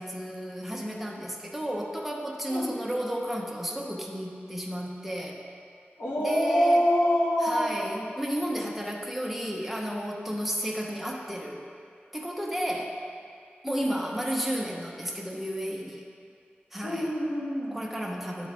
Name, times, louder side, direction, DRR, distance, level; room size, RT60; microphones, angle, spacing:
voice 1, 0.0-5.4 6.2-6.8 7.4-11.6 12.1-13.0 13.6-16.0 16.7-17.1 17.7-18.5, equal, 5° right, -1 dB, 0.8 m, -33 dB
voice 2, 6.0-7.7 13.6-14.0 16.8-17.8, equal, 75° left, -6 dB, 1.5 m, -25 dB
10.5 x 3.9 x 3.4 m, 2.3 s
wide cardioid pair, 70°, 4 cm